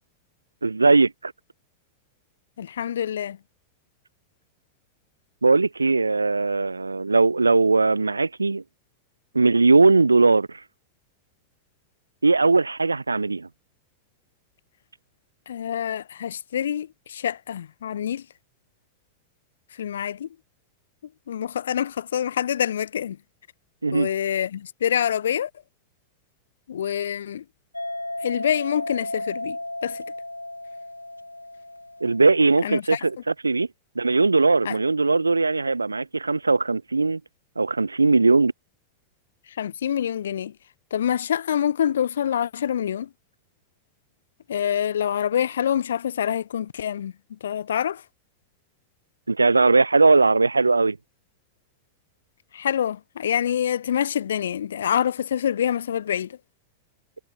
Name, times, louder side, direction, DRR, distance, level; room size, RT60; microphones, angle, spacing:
voice 1, 0.6-1.3 5.4-8.6 9.3-10.6 12.2-13.5 23.8-24.1 32.0-33.2 33.4-33.7 34.0-37.2 37.6-38.5 49.3-51.0, right 3 dB, 80° right, 0.7 m, -19 dB
voice 2, 2.6-3.4 15.5-18.3 19.7-20.3 21.3-23.2 23.9-25.5 26.7-27.4 28.2-30.0 32.6-33.1 34.6-34.8 39.5-40.6 40.9-43.1 44.5-48.0 52.5-56.4, left 9 dB, 65° left, 1.3 m, -26 dB
sound 1, 27.7-32.5, left 1 dB, 85° left, 0.5 m, -34 dB
figure-of-eight pair, 90°, 0 cm